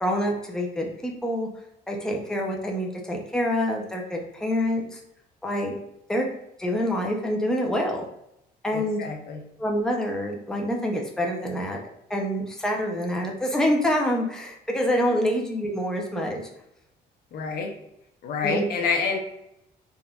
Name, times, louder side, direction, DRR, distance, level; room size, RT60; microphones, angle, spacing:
voice 1, 0.0-1.5 1.9-5.0 5.4-5.8 6.1-6.3 6.6-8.0 8.6-9.0 9.6-11.8 12.1-16.4 18.4-18.6, equal, 5° left, 0 dB, 0.5 m, -26 dB
voice 2, 8.7-9.4 17.3-17.7 18.2-19.2, left 5 dB, 65° left, 3 dB, 0.6 m, -27 dB
3.5 x 2.5 x 2.2 m, 0.81 s
cardioid pair, 110°, 17 cm